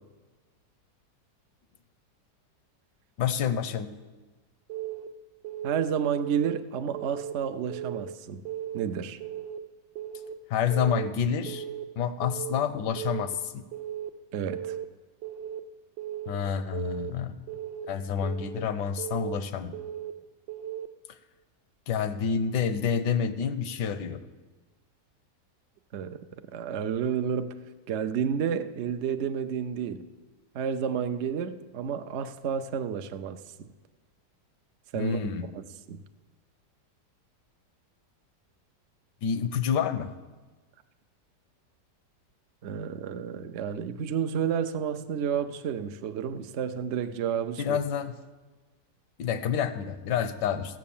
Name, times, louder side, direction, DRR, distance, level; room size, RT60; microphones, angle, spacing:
voice 1, 3.2-3.9 10.5-11.6 12.0-13.6 16.3-17.3 17.9-19.7 21.9-24.2 35.0-35.5 39.2-40.1 47.6-48.1 49.2-50.8, left 7 dB, 75° left, 12 dB, 1.3 m, -28 dB
Keyboard (musical) / Alarm, 4.7-5.1 5.4-5.8 6.2-6.6 6.9-7.3 7.7-8.1 8.5-8.8 9.2-9.6 10.0-10.3 10.7-11.1 11.5-11.8 12.2-12.6 13.0-13.3 13.7-14.1 14.5-14.8 15.2-15.6 16.0-16.4 16.7-17.1 17.5-17.9 18.2-18.6 19.0-19.4 19.7-20.1 20.5-20.9, right 11 dB, 90° right, 1.4 m, -36 dB
voice 2, 5.6-8.4 8.7-9.2 14.3-14.8 25.9-26.3 26.5-27.5 27.9-30.0 30.5-33.7 34.9-35.2 35.9-36.0 42.6-47.8, right 8 dB, 70° right, 8 dB, 0.6 m, -30 dB
15.0 x 7.3 x 7.2 m, 1.3 s
omnidirectional pair, 1.9 m